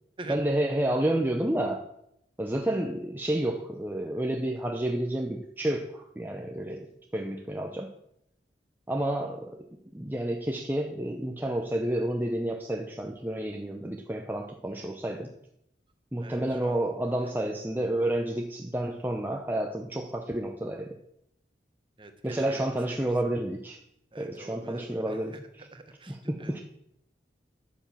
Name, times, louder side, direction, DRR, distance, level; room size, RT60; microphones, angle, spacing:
voice 1, 0.3-1.9 2.4-7.9 8.9-15.3 16.1-21.0 22.2-23.8 24.2-25.4 26.1-26.6, right 1 dB, 10° right, 2 dB, 0.8 m, -30 dB
voice 2, 16.2-16.9 22.0-23.1 24.1-26.5, right 2 dB, 30° right, 6 dB, 1.4 m, -46 dB
10.5 x 9.0 x 7.4 m, 0.78 s
head